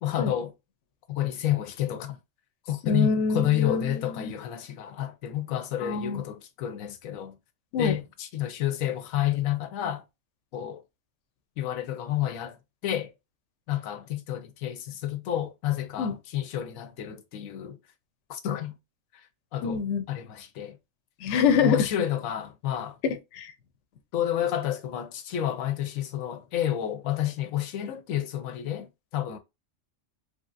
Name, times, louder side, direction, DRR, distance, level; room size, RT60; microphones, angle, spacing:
voice 1, 0.0-0.5 1.1-2.2 2.7-7.4 7.8-10.0 10.5-10.8 11.6-12.6 12.8-13.1 13.7-17.8 18.3-18.8 19.5-19.8 20.1-20.8 21.6-23.0 24.1-29.4, left 11 dB, 90° left, 1.0 m, -30 dB
voice 2, 2.8-4.3 5.8-6.2 7.7-7.9 16.0-16.1 19.6-20.0 21.2-21.8 23.0-23.5, left 5 dB, 65° left, 0.9 m, -25 dB
3.2 x 2.8 x 2.4 m
omnidirectional pair, 1.4 m